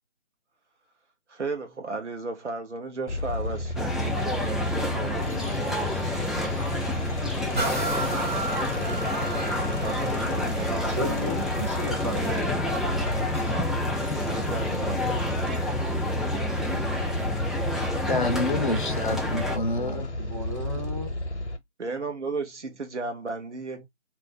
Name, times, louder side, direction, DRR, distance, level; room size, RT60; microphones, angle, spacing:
voice 1, 1.3-5.9 9.8-11.0 14.3-15.9 21.8-23.9, right 3 dB, 75° right, 0.8 m, -35 dB
sound 1, 3.1-21.6, left 1 dB, 70° left, 0.9 m, -32 dB
sound 2, 3.8-19.6, left 2 dB, ahead, 0.3 m, -30 dB
sound 3, 7.5-15.2 15.7-15.8, right 2 dB, 45° right, 1.3 m, -36 dB
voice 2, 10.9-12.6 19.8-21.2, equal, 25° right, 0.7 m, -34 dB
voice 3, 18.1-20.1, left 2 dB, 45° left, 0.6 m, -28 dB
2.5 x 2.0 x 3.6 m
figure-of-eight pair, 155°, 36 cm